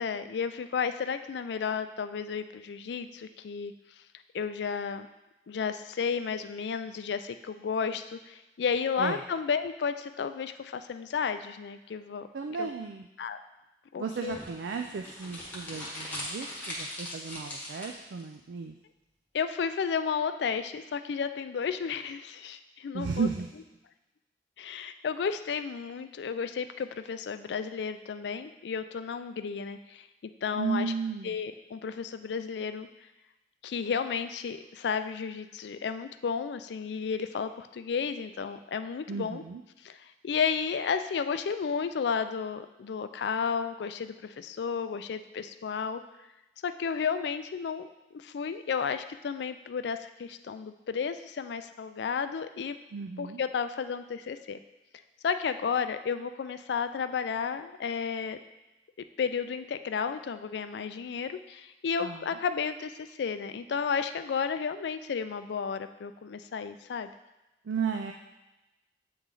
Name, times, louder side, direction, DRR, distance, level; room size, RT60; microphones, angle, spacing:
voice 1, 0.0-3.7 4.3-5.1 5.5-12.3 12.6-12.7 13.2-13.4 13.9-14.4 19.3-23.3 24.6-30.9 31.2-32.9 33.6-39.4 39.8-46.0 46.6-47.9 48.1-52.8 53.2-54.6 55.2-58.4 59.2-67.1, left 6 dB, 75° left, 10 dB, 0.4 m, -32 dB
voice 2, 12.3-13.1 14.0-18.7 22.9-23.5 30.5-31.3 39.1-39.6 52.9-53.4 62.0-62.4 67.6-68.1, right 5 dB, 85° right, 4 dB, 0.4 m, -34 dB
sound 1, 14.3-18.2, left 1 dB, 10° left, 1.2 m, -40 dB
8.4 x 3.1 x 3.8 m, 1.0 s
head